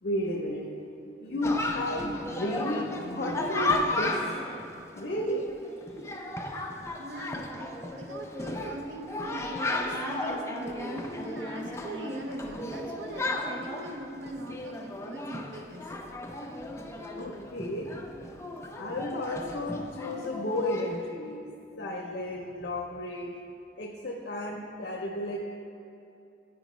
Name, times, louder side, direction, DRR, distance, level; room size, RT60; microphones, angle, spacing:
voice 1, 0.0-0.7 1.2-4.6 5.0-5.5 5.9-6.1 16.6-17.9 18.7-21.4 21.8-23.4 23.8-25.4, left 1 dB, 65° left, 0 dB, 0.6 m, -33 dB
Chatter, 1.4-21.0, left 2 dB, 15° left, 0.4 m, -35 dB
voice 2, 7.0-15.9, right 1 dB, 90° right, 2 dB, 0.6 m, -41 dB
8.9 x 4.7 x 3.0 m, 2.7 s
head